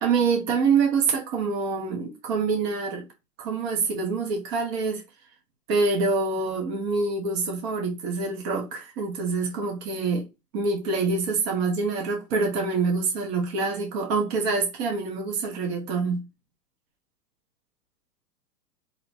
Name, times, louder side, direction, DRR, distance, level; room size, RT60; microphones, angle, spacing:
voice 1, 0.0-3.0 3.4-5.0 5.7-10.3 10.5-16.3, right 4 dB, 40° right, 1.0 m, -26 dB
2.8 x 2.2 x 2.8 m
hypercardioid pair, 120°, 49 cm